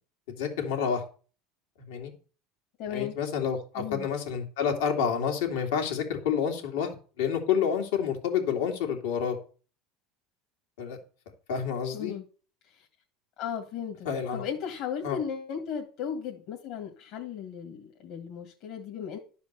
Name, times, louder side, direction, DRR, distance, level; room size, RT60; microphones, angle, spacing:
voice 1, 0.4-1.0 1.9-2.1 2.9-9.4 10.8-11.0 11.5-12.1 14.0-14.4 15.0-15.2, left 7 dB, 90° left, 2 dB, 2.9 m, -29 dB
voice 2, 2.8-3.2 3.8-4.1 11.9-12.2 12.7-12.9 13.4-19.2, left 8 dB, 60° left, 1 dB, 2.0 m, -36 dB
12.0 x 5.1 x 6.9 m, 0.40 s
supercardioid pair, 130°, 0 cm